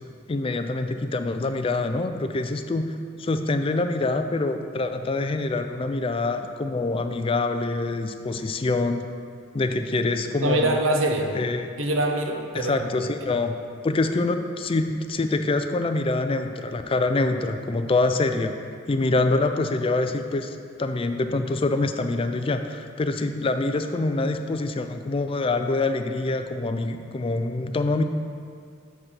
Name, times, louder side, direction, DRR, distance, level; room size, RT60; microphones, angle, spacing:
voice 1, 0.3-2.9 3.2-9.1 9.5-10.8 11.3-11.7 12.5-13.6 13.8-18.5 18.9-28.0, left 2 dB, 30° left, 7 dB, 0.3 m, -25 dB
voice 2, 10.4-11.3 11.8-12.9 13.2-13.4, right 1 dB, 85° right, 3 dB, 0.8 m, -24 dB
6.6 x 4.8 x 5.7 m, 2.2 s
head